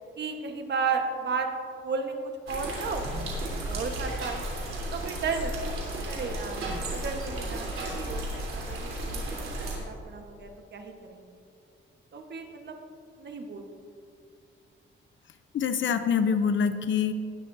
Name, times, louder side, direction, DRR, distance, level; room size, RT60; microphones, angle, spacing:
voice 1, 0.2-1.5 1.8-3.3 3.7-4.5 4.9-6.6 6.9-9.2 9.8-11.3 12.1-12.8 13.2-13.7, right 5 dB, 55° right, 4 dB, 1.4 m, -34 dB
sound 1, 2.5-9.8, right 1 dB, 90° right, 3.5 m, -34 dB
voice 2, 15.5-17.1, left 6 dB, 70° left, 9 dB, 0.7 m, -25 dB
19.0 x 12.0 x 2.8 m, 2.4 s
cardioid pair, 115°, 21 cm